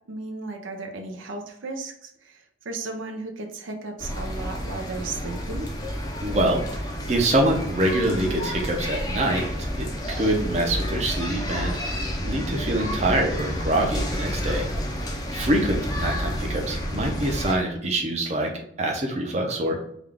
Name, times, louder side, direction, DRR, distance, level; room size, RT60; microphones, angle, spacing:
voice 1, 0.1-5.7, right 3 dB, 90° right, 4 dB, 0.6 m, -35 dB
sound 1, 4.0-17.6, equal, 20° left, 0.5 m, -30 dB
voice 2, 6.2-9.4 9.7-14.7 15.3-18.5 18.8-19.8, right 1 dB, 35° right, 1 dB, 0.6 m, -25 dB
3.6 x 2.3 x 3.4 m, 0.70 s
head